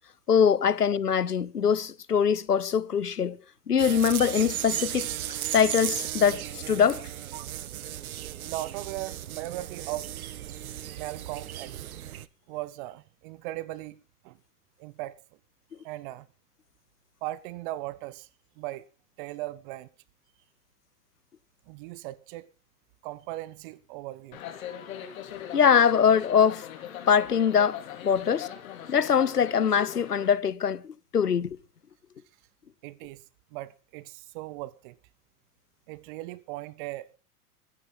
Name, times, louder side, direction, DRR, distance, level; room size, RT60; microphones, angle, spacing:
voice 1, 0.3-3.4 3.7-5.1 5.5-7.1 25.5-26.7 27.1-28.5 28.9-31.6, left 7 dB, 85° left, 0.8 m, -23 dB
sound 1, 3.8-12.2, right 11 dB, 65° right, 0.9 m, -35 dB
voice 2, 8.5-10.1 11.0-11.8 12.5-14.4 14.8-15.2 15.8-16.3 17.2-18.3 18.6-18.8 19.2-19.9 21.7-22.5 23.0-24.4 32.8-33.2 33.5-35.0 35.9-37.1, right 16 dB, 35° right, 0.6 m, -38 dB
sound 2, 24.3-30.3, left 10 dB, 60° left, 3.5 m, -40 dB
23.0 x 9.7 x 4.0 m
figure-of-eight pair, 95°, 46 cm